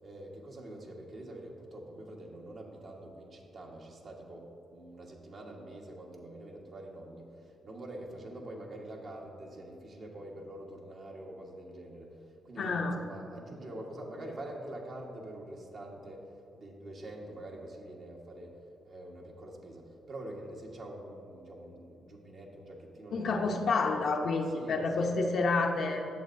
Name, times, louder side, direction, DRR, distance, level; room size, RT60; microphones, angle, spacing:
voice 1, 0.0-12.1 12.4-16.2 16.5-18.5 18.8-23.9 24.5-25.1, right 1 dB, 55° right, -1 dB, 1.3 m, -45 dB
voice 2, 12.6-13.0 23.1-26.1, left 3 dB, 65° left, 3 dB, 0.7 m, -29 dB
11.0 x 7.2 x 2.6 m, 2.8 s
hypercardioid pair, 45°, 0 cm